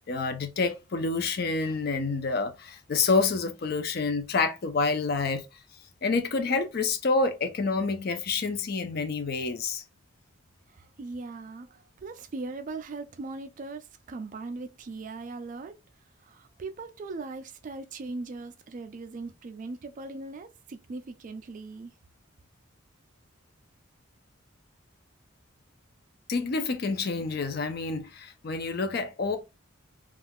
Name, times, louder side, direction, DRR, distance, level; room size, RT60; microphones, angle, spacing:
voice 1, 0.1-5.5 6.0-9.8 26.3-29.4, left 4 dB, 50° left, 0.4 m, -28 dB
voice 2, 10.7-15.8 16.2-21.9, right 3 dB, 40° right, 0.3 m, -39 dB
2.4 x 2.3 x 3.4 m
head